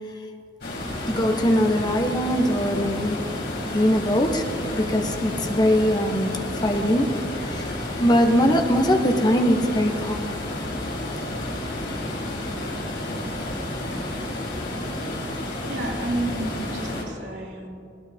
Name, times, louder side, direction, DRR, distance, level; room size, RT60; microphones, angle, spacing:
sound 1, 0.6-17.0, left 1 dB, 80° left, 4.4 m, -31 dB
voice 1, 1.1-3.2 3.6-4.4 4.8-7.1 7.5-10.3, equal, 25° left, 4 dB, 0.9 m, -22 dB
voice 2, 15.6-17.7, right 1 dB, 80° right, -3 dB, 3.0 m, -31 dB
20.0 x 19.5 x 2.8 m, 2.5 s
head